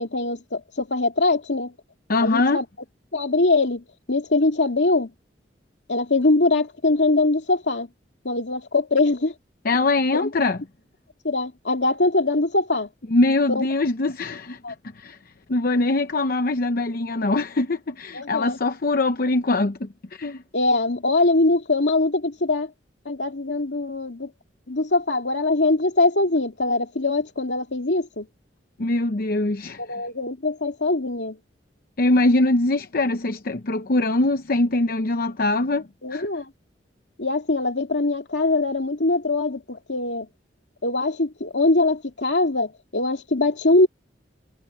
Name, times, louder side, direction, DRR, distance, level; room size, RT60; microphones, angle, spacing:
voice 1, 0.0-1.7 2.2-2.6 3.1-3.8 4.1-5.1 5.9-7.9 8.2-9.3 10.1-10.3 11.2-12.9 13.5-13.7 14.6-14.7 18.1-18.6 20.5-22.7 23.1-24.3 24.7-28.3 29.8-31.4 36.0-36.4 37.2-40.3 40.8-43.9, left 2 dB, 70° left, 2.4 m, -22 dB
voice 2, 2.1-2.6 9.6-10.6 13.1-14.6 14.9-15.2 15.5-20.4 28.8-30.0 32.0-36.3, left 2 dB, 55° left, 0.8 m, -22 dB
head